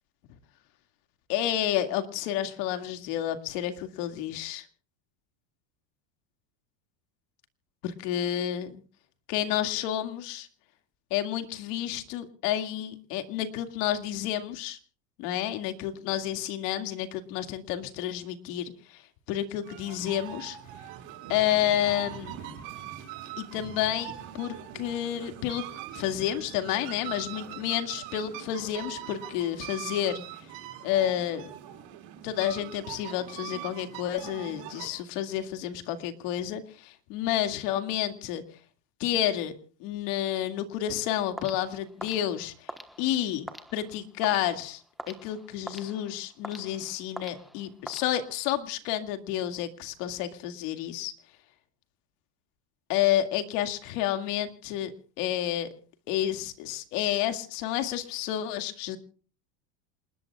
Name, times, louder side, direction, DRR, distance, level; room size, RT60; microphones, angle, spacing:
voice 1, 1.3-4.7 7.8-8.8 9.3-10.5 11.1-14.8 15.2-19.0 19.3-20.6 21.3-22.4 23.4-25.6 25.9-30.2 30.8-31.5 32.2-38.4 39.0-39.5 39.8-42.7 43.0-43.4 43.7-44.8 45.1-51.1 52.9-55.7 56.1-59.0, left 11 dB, 65° left, 7 dB, 2.3 m, -30 dB
sound 1, 19.6-34.9, right 11 dB, 55° right, 6.5 m, -42 dB
sound 2, 41.4-48.6, equal, ahead, 1.2 m, -45 dB
28.0 x 20.5 x 2.4 m, 0.40 s
cardioid pair, 155°, 50 cm